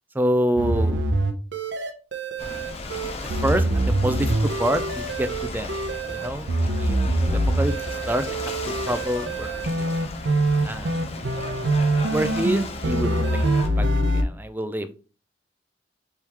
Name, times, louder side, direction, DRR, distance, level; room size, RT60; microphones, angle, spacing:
voice 1, 0.1-1.0 3.4-5.7 6.1-7.7 8.1-8.5 8.9-9.8 10.6-10.9 12.1-15.0, right 1 dB, 10° right, 10 dB, 0.4 m, -27 dB
sound 1, 0.6-14.2, right 1 dB, 75° right, 0.7 m, -24 dB
Ocean / Boat Water vehicle, 2.4-13.7, left 2 dB, 35° left, 0.7 m, -35 dB
4.6 x 3.5 x 2.9 m, 0.34 s
head